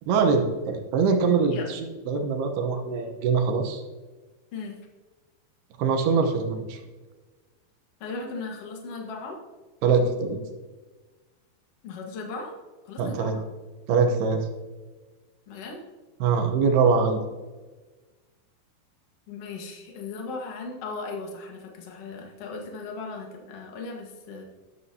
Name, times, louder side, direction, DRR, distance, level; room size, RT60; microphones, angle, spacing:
voice 1, 0.1-1.8 2.1-3.8 5.8-6.8 9.8-10.4 13.0-13.3 13.9-14.5 16.2-17.2, right 5 dB, 70° right, 5 dB, 2.8 m, -23 dB
voice 2, 8.0-9.4 11.8-12.5 12.8-13.4 15.5-15.8 19.3-24.5, left 3 dB, 60° left, 1 dB, 1.6 m, -37 dB
13.0 x 11.5 x 2.9 m, 1.3 s
omnidirectional pair, 5.3 m